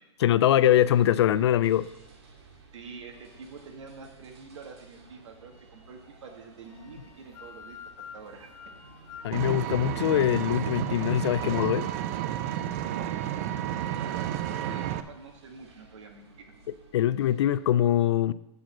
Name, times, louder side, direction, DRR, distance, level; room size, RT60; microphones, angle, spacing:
voice 1, 0.2-1.9 9.2-11.9 16.9-18.3, left 11 dB, 65° left, 17 dB, 0.4 m, -23 dB
sound 1, 0.5-17.7, right 3 dB, 65° right, 2.1 m, -55 dB
voice 2, 2.7-8.7 12.8-16.5, right 4 dB, 80° right, 4 dB, 1.8 m, -47 dB
sound 2, 6.7-12.0, left 7 dB, 20° left, 0.7 m, -50 dB
Vehicle, 9.3-15.0, right 11 dB, 30° right, 0.4 m, -31 dB
7.7 x 5.0 x 7.2 m, 0.89 s
supercardioid pair, 170°, 15 cm